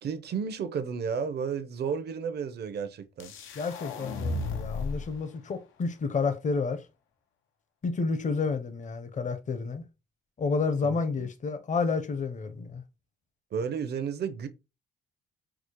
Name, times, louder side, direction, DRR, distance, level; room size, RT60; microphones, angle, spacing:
voice 1, 0.0-3.3 10.8-11.3 13.5-14.5, right 6 dB, 55° right, 0.7 m, -32 dB
sound 1, 3.2-5.2, left 3 dB, 80° left, 0.6 m, -34 dB
voice 2, 3.5-6.8 7.8-9.9 10.4-12.8, left 4 dB, 40° left, 0.7 m, -30 dB
4.8 x 2.0 x 3.0 m
cardioid pair, 90°, 20 cm